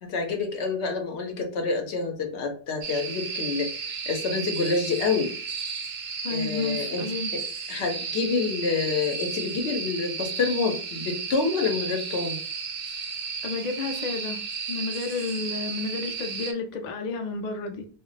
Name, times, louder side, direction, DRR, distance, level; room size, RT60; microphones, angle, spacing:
voice 1, 0.0-5.3 6.3-7.0 7.3-7.4 7.7-12.4, left 4 dB, 80° left, 3 dB, 1.0 m, -27 dB
sound 1, 2.8-16.5, right 5 dB, 60° right, 0.6 m, -33 dB
voice 2, 6.2-7.3 13.4-14.4 14.7-17.9, left 4 dB, 55° left, 4 dB, 0.5 m, -31 dB
2.3 x 2.1 x 3.8 m, 0.42 s
omnidirectional pair, 1.1 m